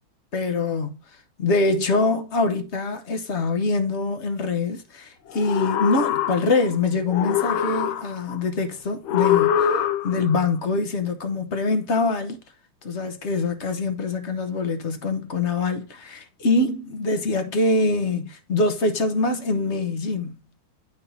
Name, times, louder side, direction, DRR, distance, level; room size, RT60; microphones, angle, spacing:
voice 1, 0.3-1.0 1.4-12.4 12.8-20.4, left 3 dB, 50° left, 0.8 m, -24 dB
sound 1, 5.3-6.7 7.1-8.3 9.1-10.4, left 10 dB, 85° left, 1.6 m, -23 dB
8.6 x 5.5 x 2.7 m
omnidirectional pair, 2.2 m